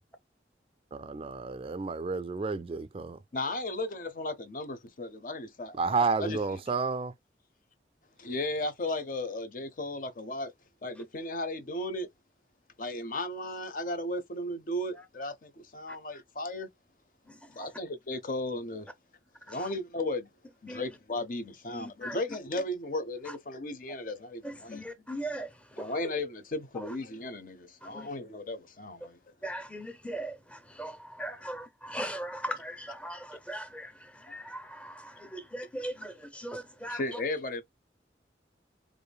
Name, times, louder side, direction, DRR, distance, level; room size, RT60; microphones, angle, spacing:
voice 1, 0.9-3.2 5.8-7.1, right 4 dB, 30° right, 0.3 m, -31 dB
voice 2, 3.3-6.6 8.2-10.5 10.8-12.1 12.8-16.7 17.5-18.9 19.5-20.3 20.6-24.8 25.8-29.3 36.9-37.6, left 2 dB, 50° left, 0.6 m, -35 dB
voice 3, 17.2-17.7 19.5-19.7 20.7-20.9 21.7-22.2 23.3-23.4 24.4-25.9 26.7-26.9 27.8-28.1 29.4-37.2, right 1 dB, 5° left, 0.6 m, -39 dB
4.8 x 2.6 x 2.2 m
head